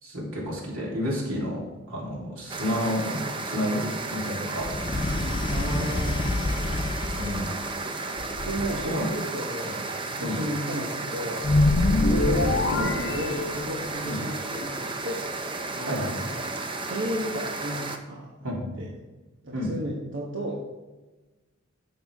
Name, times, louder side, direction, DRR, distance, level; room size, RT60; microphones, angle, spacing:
voice 1, 0.0-1.6 1.9-4.7 7.1-7.6 8.8-9.0 9.6-9.8 10.2-10.4 14.0-14.2 15.9-16.2 18.4-18.9 19.5-19.7, equal, 90° right, -4 dB, 3.4 m, -30 dB
sound 1, 2.5-18.0, right 3 dB, 25° right, 0.7 m, -33 dB
sound 2, 4.6-7.6 8.2-9.1, left 2 dB, 25° left, 0.4 m, -30 dB
voice 2, 5.5-6.2 8.3-9.8 10.1-11.4 11.9-15.2 15.7-16.5 16.9-18.3 18.8-18.9 19.4-20.6, equal, 60° right, -3 dB, 1.3 m, -33 dB
sound 3, 11.4-14.0, left 2 dB, 70° left, 0.7 m, -23 dB
10.5 x 7.4 x 3.6 m, 1.2 s
head